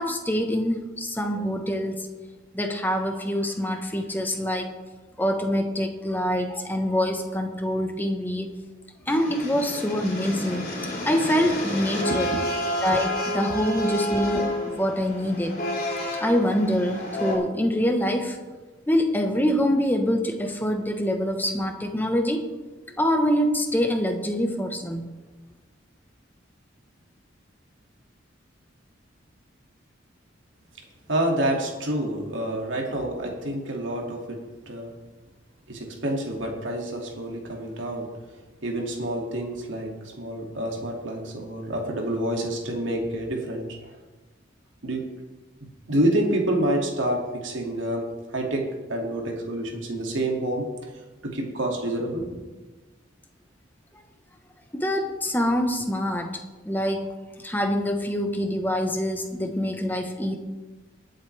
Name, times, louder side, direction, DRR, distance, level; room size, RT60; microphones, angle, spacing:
voice 1, 0.0-2.1 2.5-4.8 5.2-8.5 9.1-10.7 11.0-12.3 12.8-15.6 16.2-18.4 18.9-22.5 22.9-25.1 54.7-56.3 56.6-57.1 57.4-60.4, equal, 10° left, 5 dB, 1.1 m, -25 dB
sound 1, 9.1-17.4, left 1 dB, 45° left, 3.7 m, -30 dB
voice 2, 12.1-12.5 31.1-34.4 34.7-34.9 35.7-38.1 38.6-44.0 44.8-45.0 45.9-48.1 48.3-50.7 51.2-52.4, right 1 dB, 80° right, 1 dB, 2.4 m, -28 dB
22.5 x 7.7 x 3.4 m, 1.2 s
head